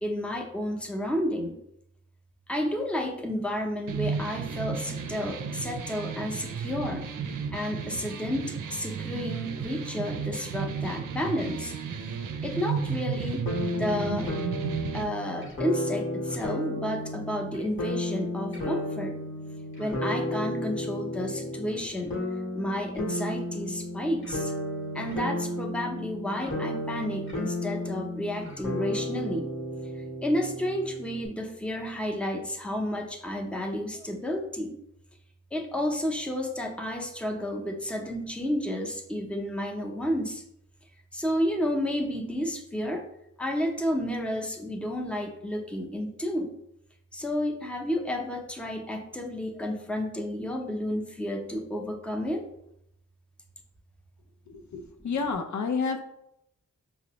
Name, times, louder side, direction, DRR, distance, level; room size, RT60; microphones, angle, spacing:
voice 1, 0.0-1.6 2.5-7.1 7.5-11.7 12.4-13.5 13.7-14.3 14.9-19.2 19.8-22.2 22.5-24.5 24.9-29.5 30.0-34.8 35.5-40.4 41.1-43.1 43.4-46.5 47.1-52.5 54.7-55.1, left 1 dB, 5° left, 2 dB, 0.6 m, -31 dB
sound 1, 3.9-15.0, right 6 dB, 85° right, 0.5 m, -33 dB
sound 2, 13.4-31.3, left 1 dB, 40° left, 1.0 m, -33 dB
voice 2, 54.5-56.0, left 5 dB, 65° left, 4 dB, 0.5 m, -30 dB
5.0 x 2.0 x 2.9 m, 0.77 s
cardioid pair, 45°, 31 cm